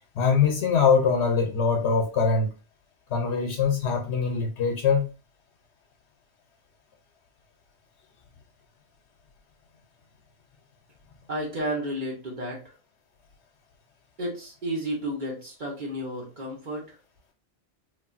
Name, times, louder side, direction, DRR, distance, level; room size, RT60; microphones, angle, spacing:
voice 1, 0.2-2.5 3.1-5.1, left 5 dB, 90° left, 2 dB, 0.9 m, -23 dB
voice 2, 11.3-12.8 14.2-17.0, equal, 50° right, -2 dB, 1.0 m, -32 dB
3.2 x 2.5 x 2.4 m, 0.32 s
omnidirectional pair, 1.1 m